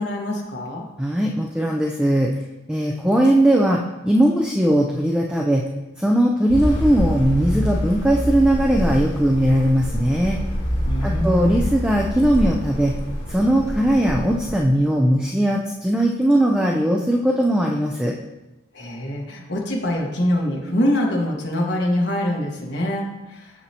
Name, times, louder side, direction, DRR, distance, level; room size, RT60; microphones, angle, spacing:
voice 1, 0.0-0.9 10.8-11.6 18.7-23.5, left 1 dB, 55° left, -2 dB, 1.5 m, -24 dB
voice 2, 1.0-2.3 2.7-3.8 4.0-5.6 6.0-10.4 11.0-12.9 13.3-18.1, right 1 dB, 5° right, -1 dB, 0.4 m, -19 dB
Downtown Sugar City, 6.5-14.6, equal, 75° left, 2.4 m, -26 dB
7.5 x 6.7 x 2.9 m, 1.0 s
head